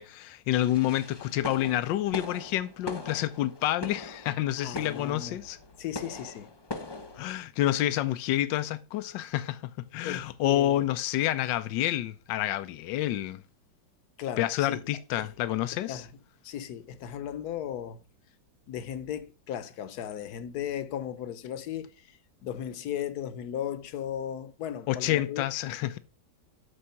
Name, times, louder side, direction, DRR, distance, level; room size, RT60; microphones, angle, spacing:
voice 1, 0.0-5.6 7.1-9.6 9.9-13.4 14.4-16.0 24.9-26.0, left 13 dB, 85° left, 1.3 m, -28 dB
sound 1, 0.5-7.4, left 2 dB, 30° left, 0.4 m, -41 dB
voice 2, 4.6-5.4 5.8-6.5 10.0-10.8 14.2-14.8 15.2-15.3 15.9-16.1 16.4-18.0 18.7-25.4, left 10 dB, 65° left, 1.3 m, -36 dB
8.4 x 6.2 x 5.7 m
omnidirectional pair, 1.9 m